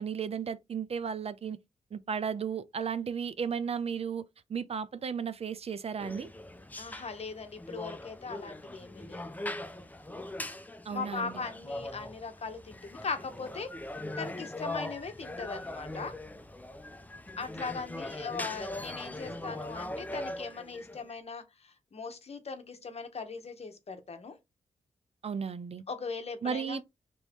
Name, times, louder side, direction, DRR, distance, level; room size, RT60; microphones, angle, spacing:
voice 1, 0.0-1.6 1.9-4.2 4.5-6.3 10.9-11.4 25.2-25.8 26.4-26.8, right 7 dB, 50° right, 0.4 m, -34 dB
sound 1, 6.0-21.1, left 1 dB, 10° left, 0.6 m, -41 dB
voice 2, 6.8-9.2 10.9-13.7 14.2-16.1 17.4-24.4 25.9-26.8, left 5 dB, 50° left, 0.9 m, -39 dB
3.0 x 2.7 x 3.3 m
cardioid pair, 60°, 14 cm